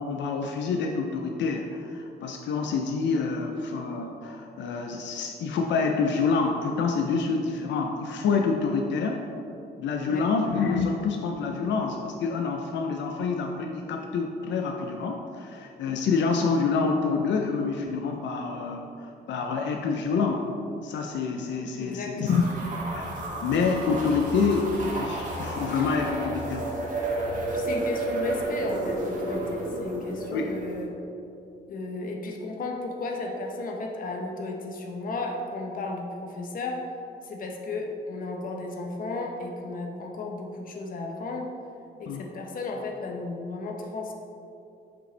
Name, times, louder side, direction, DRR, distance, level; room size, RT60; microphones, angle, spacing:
voice 1, 0.0-9.2 9.8-18.9 19.3-20.5 20.8-22.4 22.9-23.0 23.4-26.7 30.3-30.5 42.1-42.2, left 4 dB, 80° left, 2 dB, 0.5 m, -27 dB
voice 2, 21.8-22.4 27.5-31.0 31.7-36.8 37.2-41.5 42.0-44.1, left 3 dB, 50° left, 1 dB, 0.8 m, -34 dB
sound 1, 22.3-30.8, right 2 dB, 45° right, 1.4 m, -32 dB
7.7 x 5.3 x 3.3 m, 2.7 s
wide cardioid pair, 160°, 19 cm